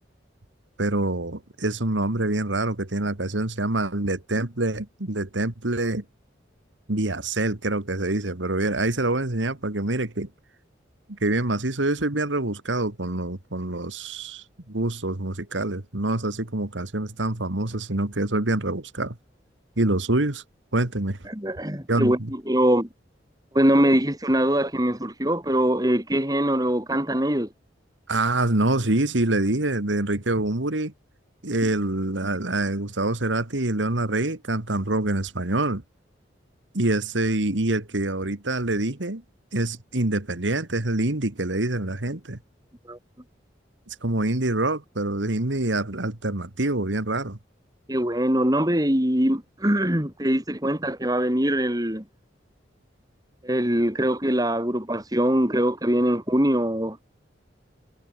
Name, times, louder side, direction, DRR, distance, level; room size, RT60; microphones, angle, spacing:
voice 1, 0.8-6.0 6.9-10.3 11.2-19.2 19.8-20.4 20.7-21.2 21.9-22.3 28.1-30.9 31.4-35.8 36.7-39.2 39.5-42.4 43.9-47.4, right 2 dB, 75° right, 2.1 m, -26 dB
voice 2, 21.3-22.9 23.5-27.5 42.9-43.0 47.9-52.0 53.4-57.0, equal, 20° right, 4.0 m, -23 dB
head